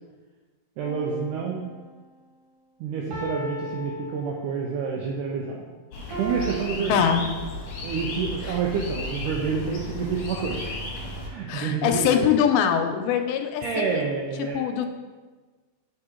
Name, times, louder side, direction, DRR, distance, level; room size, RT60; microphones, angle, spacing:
sound 1, 0.8-2.1 3.1-4.8 6.1-7.8 8.5-8.6, right 2 dB, 65° right, 1.9 m, -37 dB
voice 1, 0.8-1.7 2.8-5.7 6.2-7.1 7.8-10.6 11.2-12.2 13.6-14.9, right 5 dB, 85° right, -1 dB, 1.8 m, -28 dB
sound 2, 5.9-11.3, left 2 dB, 70° left, 2.2 m, -34 dB
voice 2, 6.9-7.3 8.4-8.6 11.5-14.0 14.5-14.9, left 8 dB, 85° left, 6 dB, 2.4 m, -23 dB
6.6 x 3.7 x 4.3 m, 1.3 s
omnidirectional pair, 4.3 m